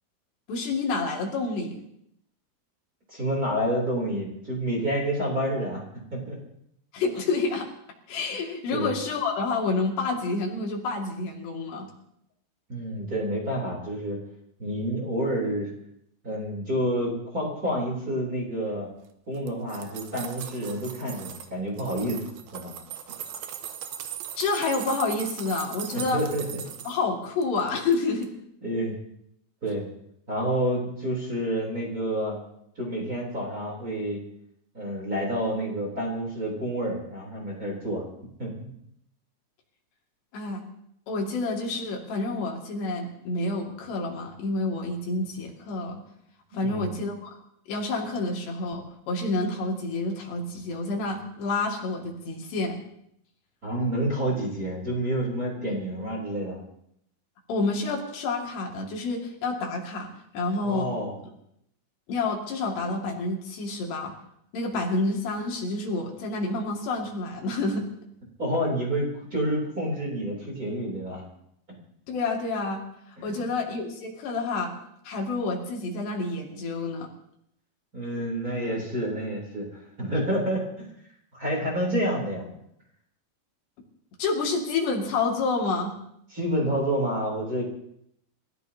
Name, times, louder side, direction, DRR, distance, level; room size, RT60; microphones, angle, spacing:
voice 1, 0.5-1.8 6.9-7.7 8.1-11.9 24.4-26.2 26.9-28.3 40.3-40.6 41.1-46.0 46.5-47.4 47.7-52.8 57.5-60.1 60.3-60.9 62.1-64.1 64.5-67.9 72.1-72.8 73.2-74.7 75.0-77.1 84.2-85.9, left 3 dB, 75° left, 0 dB, 4.4 m, -28 dB
voice 2, 3.1-5.8 6.1-6.4 8.7-8.9 12.7-14.2 14.6-15.7 16.2-18.9 19.3-22.2 22.5-22.7 25.9-26.6 28.6-29.0 29.6-29.8 30.3-32.4 32.7-34.2 34.7-38.0 38.4-38.7 46.5-46.9 53.6-56.6 60.6-61.1 68.4-71.2 73.2-73.5 77.9-79.7 80.0-80.7 81.3-82.5 86.3-87.6, right 1 dB, 20° right, -4 dB, 3.5 m, -29 dB
sound 1, 19.3-21.5 21.8-27.0 27.4-28.0 28.2-28.3, right 9 dB, 70° right, 2.7 m, -39 dB
29.5 x 15.5 x 2.9 m, 0.74 s
omnidirectional pair, 4.9 m